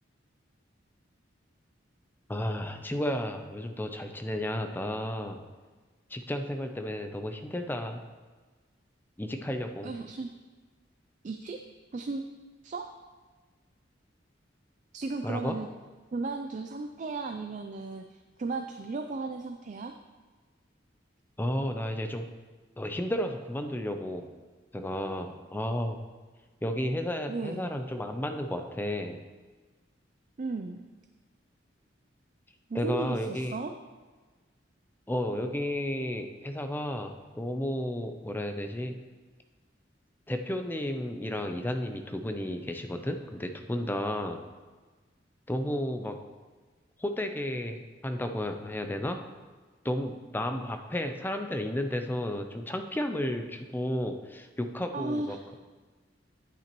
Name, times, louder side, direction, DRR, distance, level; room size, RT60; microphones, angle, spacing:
voice 1, 2.3-5.4 6.1-8.0 9.2-9.9 15.2-15.5 21.4-22.2 22.8-24.3 24.7-26.0 26.6-29.2 32.7-33.6 35.1-38.9 40.3-44.4 45.5-46.2 47.0-49.2 49.8-55.5, left 1 dB, 10° left, 6 dB, 0.5 m, -32 dB
voice 2, 9.8-10.3 11.2-11.6 11.9-12.2 12.6-12.9 14.9-15.7 16.1-19.9 27.3-27.7 30.4-30.9 32.7-33.7 54.9-55.4, right 3 dB, 40° right, 5 dB, 0.4 m, -35 dB
10.0 x 8.6 x 3.0 m, 1.3 s
head